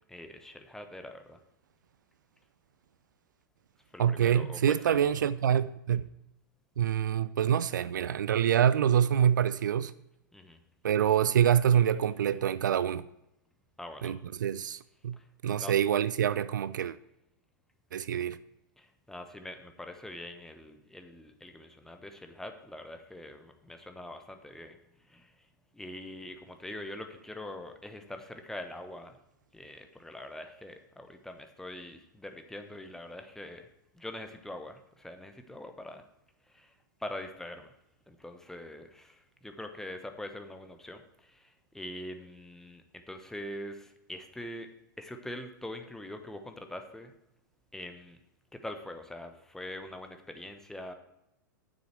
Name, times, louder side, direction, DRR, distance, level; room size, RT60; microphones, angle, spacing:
voice 1, 0.1-1.4 3.9-5.3 10.3-10.6 13.8-14.2 15.1-15.3 15.6-15.7 18.8-25.5 25.7-29.2 29.5-33.7 33.9-36.0 36.5-37.7 38.1-44.7 45.0-47.1 47.7-48.2 48.5-50.9, left 1 dB, 5° left, 1.0 m, -44 dB
voice 2, 4.0-6.1 6.8-9.9 10.8-13.1 14.0-15.2 15.4-17.0 17.9-18.4, right 9 dB, 65° right, 0.4 m, -26 dB
9.5 x 7.3 x 4.5 m
figure-of-eight pair, 100°, 11 cm